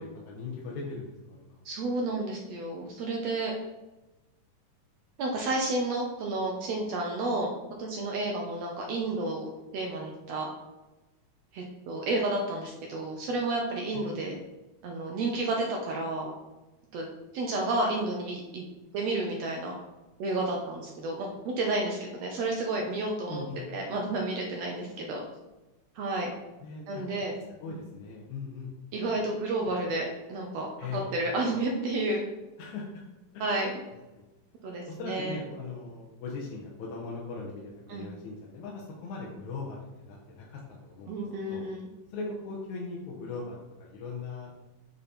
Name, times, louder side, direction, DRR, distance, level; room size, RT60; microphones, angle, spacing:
voice 1, 0.0-1.6 13.9-14.3 23.3-23.6 26.6-27.3 27.6-28.7 30.8-31.1 32.6-32.8 33.3-33.4 34.2-34.3 34.9-41.6 42.1-44.6, left 4 dB, 70° left, -2 dB, 2.2 m, -39 dB
voice 2, 1.6-3.5 5.2-7.5 7.8-10.5 11.5-14.3 14.8-16.3 16.9-17.0 17.3-18.6 18.9-19.7 20.2-25.2 25.9-26.3 26.9-27.4 27.7-27.8 28.9-32.2 33.4-33.8 34.6-35.4 37.9-38.1 41.1-41.9, right 2 dB, 75° right, 0 dB, 1.6 m, -31 dB
8.8 x 4.0 x 4.3 m, 1.1 s
omnidirectional pair, 3.7 m